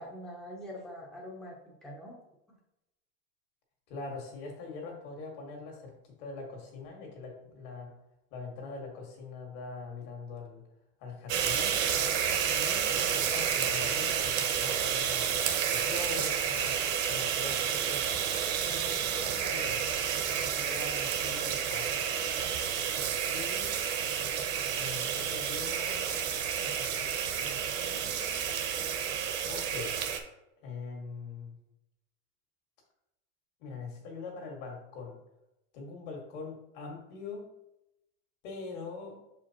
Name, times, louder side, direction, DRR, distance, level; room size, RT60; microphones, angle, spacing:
voice 1, 0.0-2.2, equal, ahead, -4 dB, 0.7 m, -44 dB
voice 2, 3.9-5.9 6.2-7.9 8.3-10.6 11.0-11.8 12.5-15.3 15.7-16.8 17.1-18.2 18.7-20.1 20.4-22.0 23.3-23.8 24.8-26.2 26.6-27.1 27.4-28.4 29.5-30.0 30.6-31.5 33.6-35.2 35.7-37.5 38.4-39.2, left 4 dB, 55° left, 0 dB, 1.9 m, -43 dB
sound 1, 11.3-30.2, right 8 dB, 45° right, 0.8 m, -30 dB
6.5 x 5.0 x 2.9 m, 0.90 s
supercardioid pair, 170°, 32 cm